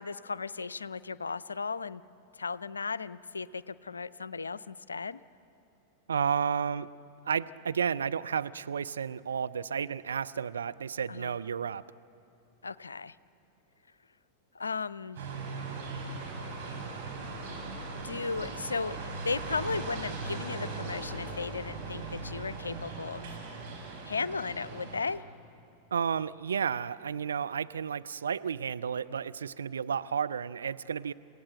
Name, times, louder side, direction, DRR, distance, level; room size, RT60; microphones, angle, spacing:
voice 1, 0.0-2.0 2.4-5.2 11.1-11.3 12.6-13.1 14.5-15.2 18.0-23.4 24.0-25.2, left 4 dB, 75° left, 17 dB, 0.4 m, -35 dB
voice 2, 6.1-6.9 7.3-11.8 25.9-31.1, right 7 dB, 70° right, 12 dB, 0.4 m, -32 dB
sound 1, 15.2-25.0, right 3 dB, 50° right, 5.7 m, -39 dB
29.0 x 16.5 x 7.9 m, 2.7 s
figure-of-eight pair, 90°, 0 cm